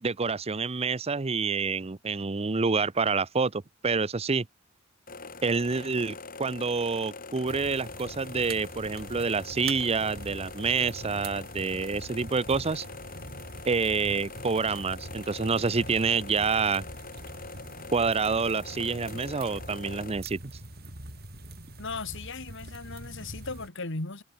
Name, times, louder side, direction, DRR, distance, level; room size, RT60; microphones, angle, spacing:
voice 1, 0.0-4.5 5.4-12.8 13.7-16.9 17.9-20.4, right 4 dB, 30° right, 0.6 m, -28 dB
sound 1, 5.1-20.1, left 4 dB, 45° left, 5.6 m, -43 dB
sound 2, 7.4-23.7, right 2 dB, 50° right, 6.3 m, -44 dB
voice 2, 21.8-24.2, left 3 dB, 60° left, 2.5 m, -37 dB
head